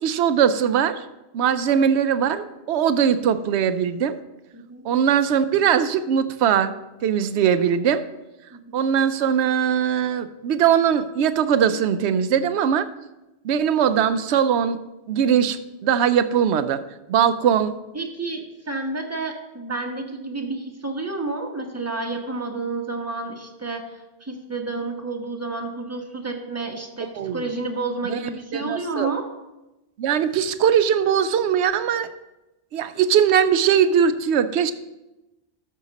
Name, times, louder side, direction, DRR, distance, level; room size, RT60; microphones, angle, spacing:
voice 1, 0.0-1.0 1.3-4.2 4.8-6.7 7.0-8.1 8.7-12.9 13.4-14.8 15.1-16.8 17.1-17.8 27.1-27.4 28.1-28.2 28.5-29.1 30.0-32.1 32.7-34.7, right 8 dB, 90° right, 11 dB, 0.9 m, -20 dB
voice 2, 4.5-4.8 8.5-8.8 17.9-29.3, right 3 dB, 15° right, 2 dB, 1.2 m, -30 dB
13.0 x 6.6 x 4.1 m, 1.0 s
omnidirectional pair, 1.1 m